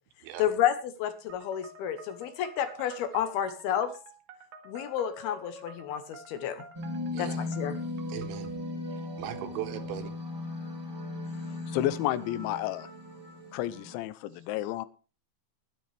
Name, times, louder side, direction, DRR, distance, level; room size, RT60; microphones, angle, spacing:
voice 1, 0.4-3.9 4.7-6.6 7.2-7.8, left 10 dB, 70° left, 10 dB, 2.7 m, -30 dB
sound 1, 1.3-8.5, right 1 dB, 60° right, 3.0 m, -49 dB
sound 2, 6.7-13.9, left 2 dB, 10° right, 1.5 m, -37 dB
voice 2, 7.1-7.5 8.1-8.5 9.2-10.2, right 11 dB, 80° right, 7 dB, 3.7 m, -38 dB
voice 3, 11.7-12.9 13.5-14.9, left 13 dB, 90° left, 15 dB, 3.1 m, -31 dB
20.5 x 9.4 x 3.4 m, 0.36 s
omnidirectional pair, 5.2 m